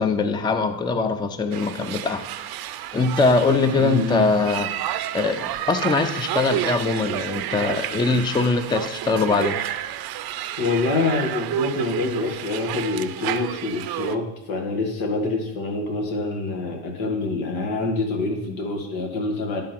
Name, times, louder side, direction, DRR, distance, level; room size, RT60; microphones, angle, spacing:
voice 1, 0.0-2.5 2.9-4.7 5.1-9.6, left 3 dB, 10° left, 9 dB, 0.4 m, -22 dB
sound 1, 1.5-14.2, right 12 dB, 55° right, 0.5 m, -30 dB
voice 2, 3.8-4.3 10.6-19.6, left 3 dB, 85° left, 3 dB, 1.7 m, -26 dB
11.0 x 3.8 x 5.9 m, 0.91 s
cardioid pair, 110°, 45 cm